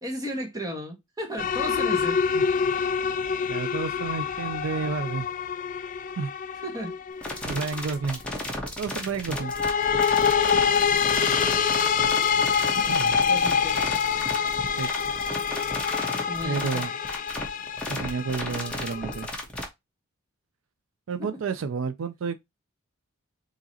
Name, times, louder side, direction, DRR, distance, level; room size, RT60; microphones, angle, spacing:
voice 1, 0.0-2.4 6.6-6.9 13.3-13.8 16.3-16.9 21.2-21.3, equal, 15° right, 1.3 m, -34 dB
sound 1, 1.4-7.9 9.3-19.3, left 6 dB, 40° left, 0.4 m, -26 dB
voice 2, 3.5-5.3 6.2-6.3 7.5-8.2 8.8-9.5 12.7-13.2 14.7-14.9 16.4-16.9 17.9-19.3 21.1-22.4, right 5 dB, 70° right, 0.4 m, -30 dB
sound 2, 7.2-19.6, left 1 dB, 5° left, 1.1 m, -34 dB
4.7 x 2.9 x 2.8 m
head